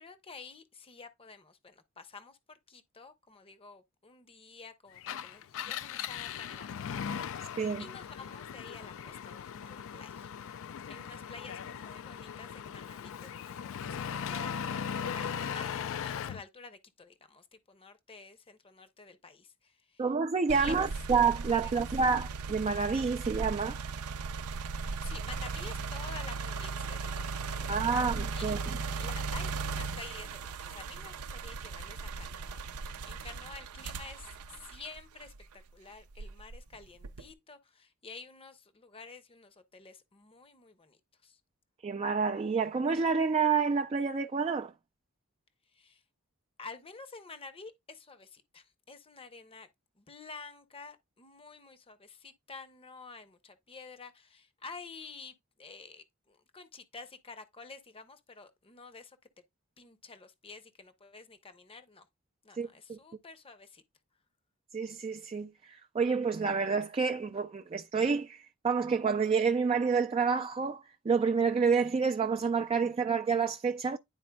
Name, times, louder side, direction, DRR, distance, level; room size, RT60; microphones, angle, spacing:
voice 1, 0.0-7.0 7.5-10.3 10.6-14.8 15.1-20.0 20.5-20.7 24.7-28.0 28.3-28.4 28.9-32.6 33.0-41.4 45.7-46.0 46.6-49.7 50.0-59.2 59.8-62.1 62.4-63.8, left 4 dB, 25° left, 0.7 m, -50 dB
Engine, 5.0-16.4, left 8 dB, 60° left, 0.4 m, -38 dB
voice 2, 20.0-23.8 27.7-28.6 41.8-44.7 62.6-63.0 64.7-74.0, right 5 dB, 25° right, 0.3 m, -29 dB
sound 1, 20.5-35.5 36.1-37.3, right 4 dB, 80° right, 0.5 m, -37 dB
10.5 x 4.2 x 2.2 m
head